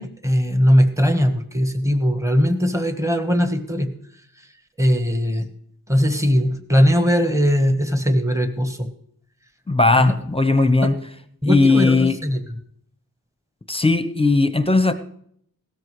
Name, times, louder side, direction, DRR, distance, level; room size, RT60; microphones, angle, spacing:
voice 1, 0.0-3.9 4.8-5.5 5.9-8.9 10.0-10.1 10.8-10.9 11.4-12.4, equal, 10° right, 8 dB, 1.3 m, -19 dB
voice 2, 9.7-11.0 11.4-12.2 13.7-14.9, left 3 dB, 15° left, 10 dB, 0.8 m, -17 dB
16.5 x 13.0 x 3.2 m, 0.66 s
wide cardioid pair, 85°, 38 cm